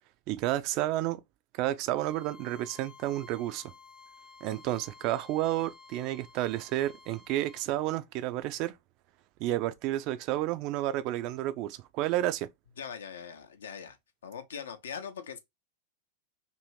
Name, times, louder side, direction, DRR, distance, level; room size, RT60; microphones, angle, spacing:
voice 1, 0.3-1.2 1.5-3.6 4.4-8.7 9.4-12.5, right 14 dB, 40° right, 0.3 m, -31 dB
Bowed string instrument, 1.9-7.7, left 5 dB, 25° left, 0.7 m, -54 dB
voice 2, 12.8-14.0 14.2-15.4, left 7 dB, 65° left, 0.6 m, -41 dB
2.7 x 2.6 x 3.1 m
figure-of-eight pair, 90°, 0 cm